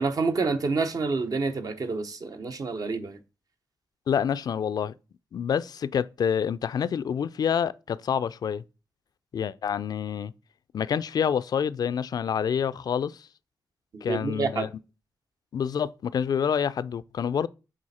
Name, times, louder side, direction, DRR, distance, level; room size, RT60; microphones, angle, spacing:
voice 1, 0.0-3.2 13.9-14.7, right 4 dB, 60° right, 0.9 m, -28 dB
voice 2, 4.1-4.9 5.3-8.6 9.3-10.3 10.7-13.3 14.0-14.7 15.5-17.5, left 7 dB, 65° left, 0.3 m, -27 dB
7.5 x 4.1 x 4.2 m
cardioid pair, 80°, 7 cm